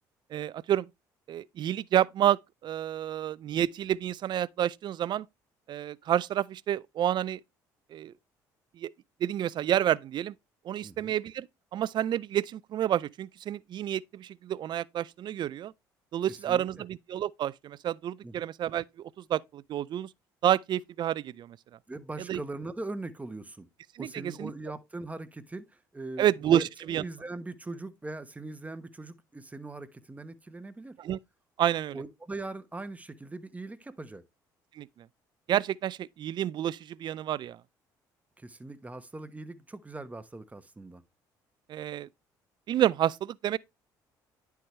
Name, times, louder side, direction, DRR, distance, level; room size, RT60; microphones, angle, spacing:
voice 1, 0.3-0.9 1.3-5.3 5.7-7.4 7.9-8.1 8.7-8.9 9.2-10.3 10.6-11.5 11.7-15.7 16.1-20.1 20.4-21.6 22.2-22.4 23.9-24.5 26.2-27.0 31.0-31.2 31.6-32.0 34.8-35.1 35.5-37.6 41.7-42.1 42.7-43.6, right 11 dB, 55° right, 0.4 m, -29 dB
voice 2, 10.8-11.1 16.5-16.6 18.2-18.4 21.9-23.7 24.0-26.6 27.0-30.9 31.9-34.2 38.4-41.0, right 2 dB, 15° right, 1.1 m, -41 dB
10.0 x 4.7 x 3.2 m
supercardioid pair, 65°, 9 cm